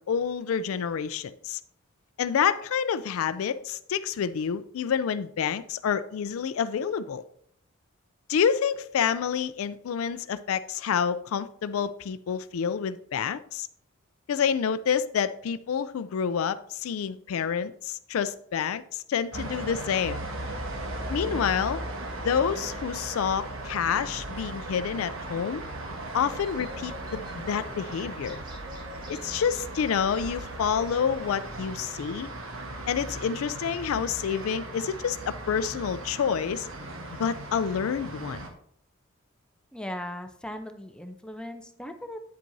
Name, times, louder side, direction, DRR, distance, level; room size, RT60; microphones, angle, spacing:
voice 1, 0.0-1.6 2.2-7.2 8.3-13.7 14.3-20.2 21.1-21.8 22.2-25.6 26.1-28.4 29.1-32.3 32.9-36.7 37.2-38.4, left 7 dB, 80° left, 0.4 m, -28 dB
sound 1, 19.3-38.5, right 2 dB, 75° right, 1.2 m, -37 dB
sound 2, 26.3-31.5, left 2 dB, 20° right, 1.4 m, -50 dB
voice 2, 39.7-42.2, left 1 dB, 5° left, 0.5 m, -38 dB
9.2 x 7.4 x 2.7 m
head